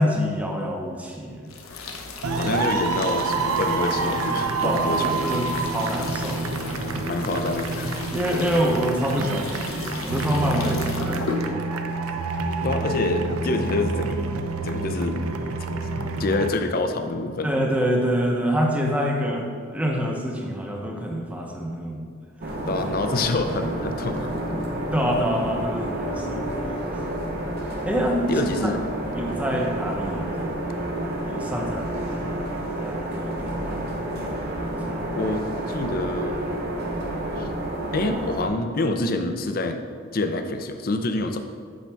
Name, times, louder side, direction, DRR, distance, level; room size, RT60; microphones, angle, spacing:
voice 1, 0.0-1.5 4.6-7.1 8.1-11.8 17.4-22.1 22.8-22.9 24.9-26.5 26.9-27.0 27.9-28.7 29.1-30.3 31.3-32.3 32.8-33.9 34.9-35.2, equal, 5° right, 0 dB, 0.7 m, -26 dB
sound 1, 1.5-11.4, left 3 dB, 75° left, 0.8 m, -36 dB
sound 2, 2.2-16.5, right 3 dB, 85° right, 0.5 m, -28 dB
voice 2, 2.3-5.2 7.1-7.9 12.6-14.3 14.6-15.2 16.2-17.5 22.6-24.4 28.3-28.8 29.3-29.4 35.1-36.6 37.3-37.5 37.9-39.8 40.1-41.4, left 2 dB, 45° left, 7 dB, 0.5 m, -26 dB
sound 3, 22.4-38.5, right 1 dB, 45° right, 0.9 m, -30 dB
8.6 x 5.8 x 3.4 m, 2.1 s
head